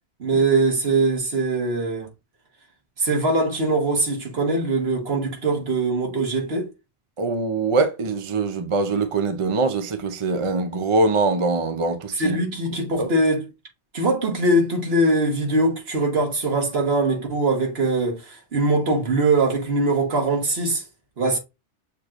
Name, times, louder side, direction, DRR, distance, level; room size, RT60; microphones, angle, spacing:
voice 1, 0.2-2.1 3.0-6.7 12.2-13.5 13.9-20.8 21.2-21.4, right 2 dB, 60° right, 1.6 m, -22 dB
voice 2, 7.2-12.4 13.0-13.1, right 3 dB, 40° right, 0.5 m, -23 dB
6.6 x 3.0 x 2.5 m
omnidirectional pair, 1.2 m